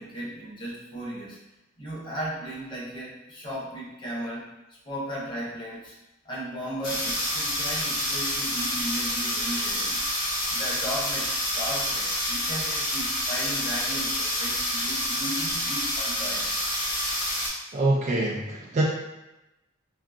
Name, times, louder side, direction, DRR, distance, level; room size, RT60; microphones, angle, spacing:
voice 1, 0.0-1.4 1.8-5.9 6.2-10.0 10.5-16.6 17.1-17.3, right 1 dB, 25° left, -6 dB, 0.8 m, -36 dB
sound 1, 6.8-17.5, left 1 dB, 45° left, 1.4 m, -28 dB
voice 2, 17.7-18.8, right 2 dB, 35° right, -5 dB, 0.3 m, -24 dB
3.6 x 2.3 x 2.3 m, 0.98 s
head